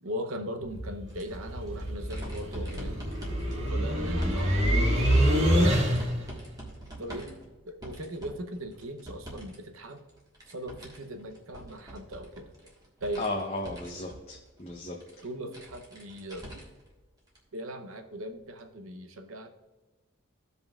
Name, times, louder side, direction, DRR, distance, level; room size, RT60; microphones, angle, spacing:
voice 1, 0.0-3.1 3.5-5.8 7.0-7.4 7.7-10.0 10.5-12.5 13.0-13.3 15.2-16.6 17.5-19.5, equal, 85° right, 6 dB, 0.8 m, -39 dB
sound 1, 0.6-6.3, equal, 60° right, 1.9 m, -26 dB
sound 2, 1.1-9.6 9.9-16.9 17.3-17.4 18.6-18.7, right 1 dB, 20° right, 1.5 m, -46 dB
voice 2, 13.2-15.0, left 2 dB, 30° left, -1 dB, 0.7 m, -35 dB
15.0 x 5.3 x 2.4 m, 1.2 s
head